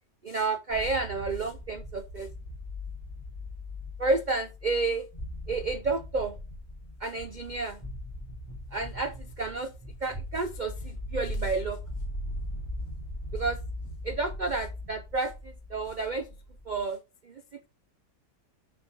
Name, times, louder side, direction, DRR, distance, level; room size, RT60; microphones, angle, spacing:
voice 1, 0.2-2.3 4.0-5.1 5.5-6.3 7.0-7.8 8.7-9.7 10.0-11.8 13.3-13.6 14.0-15.3 15.7-16.3 16.7-17.0 17.3-17.4, right 3 dB, 80° right, 0.4 m, -30 dB
sound 1, 0.7-16.8, left 1 dB, 10° left, 2.8 m, -39 dB
6.4 x 4.6 x 6.4 m
omnidirectional pair, 1.8 m